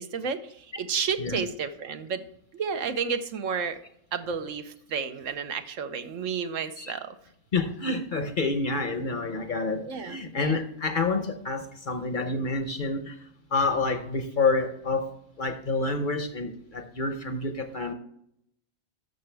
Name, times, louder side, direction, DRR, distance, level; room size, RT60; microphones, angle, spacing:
voice 1, 0.0-2.2 2.5-3.8 4.1-7.2 9.8-10.2, right 6 dB, 70° right, 9 dB, 1.0 m, -31 dB
voice 2, 7.5-13.2 13.5-15.1 15.4-17.9, left 3 dB, 45° left, 8 dB, 0.8 m, -28 dB
12.0 x 6.6 x 3.3 m, 0.75 s
omnidirectional pair, 1.5 m